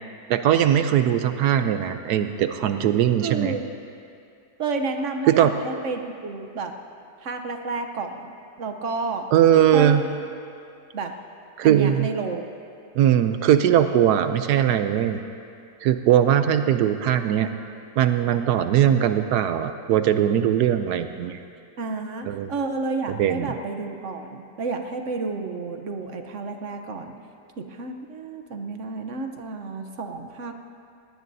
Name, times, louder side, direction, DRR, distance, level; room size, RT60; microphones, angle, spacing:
voice 1, 0.3-3.5 5.3-5.5 9.3-10.0 11.6-12.1 12.9-15.2 15.8-17.5 18.0-21.4 22.3-22.5 23.1-23.5, right 10 dB, 75° right, 9 dB, 1.1 m, -20 dB
voice 2, 3.2-3.7 4.6-6.7 7.2-9.3 9.7-10.0 10.9-11.1 11.6-12.4 21.8-27.2 27.6-30.5, right 4 dB, 55° right, 6 dB, 1.1 m, -31 dB
19.5 x 18.0 x 2.7 m, 2.5 s
omnidirectional pair, 1.8 m